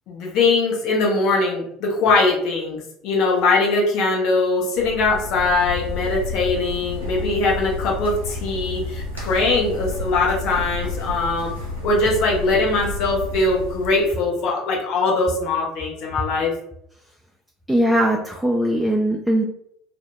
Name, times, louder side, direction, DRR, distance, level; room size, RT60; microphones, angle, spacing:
voice 1, 0.1-11.5 11.8-16.5, left 3 dB, 55° left, -2 dB, 0.6 m, -21 dB
sound 1, 4.8-14.1, left 2 dB, 90° right, 0.5 m, -30 dB
voice 2, 17.7-19.4, right 1 dB, 5° right, 0 dB, 0.3 m, -20 dB
2.1 x 2.1 x 2.8 m, 0.72 s
figure-of-eight pair, 65°, 0 cm